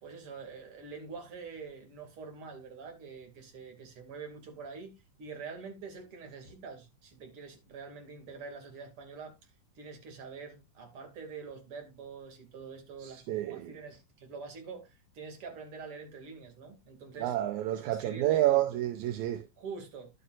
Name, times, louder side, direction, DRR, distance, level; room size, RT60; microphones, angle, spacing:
voice 1, 0.0-9.4 9.7-17.4 17.7-18.7 19.6-20.1, right 5 dB, 45° right, 3.0 m, -45 dB
voice 2, 13.0-13.7 17.2-19.4, right 14 dB, 75° right, 1.9 m, -29 dB
11.0 x 9.4 x 2.5 m
omnidirectional pair, 3.9 m